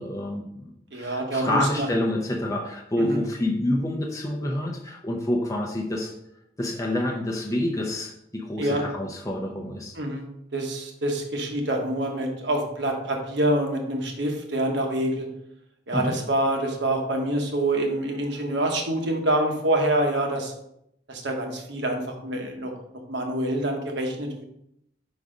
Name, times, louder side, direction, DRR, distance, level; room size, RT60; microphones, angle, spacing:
voice 1, 0.0-6.1 6.6-10.0 15.9-16.2, left 1 dB, 15° left, -1 dB, 0.6 m, -28 dB
voice 2, 0.9-1.9 3.0-3.2 8.6-8.8 10.0-10.2 10.5-15.3 15.9-20.5 21.1-22.7 23.1-24.4, right 1 dB, 65° right, 2 dB, 1.1 m, -26 dB
4.9 x 4.1 x 4.9 m, 0.78 s
head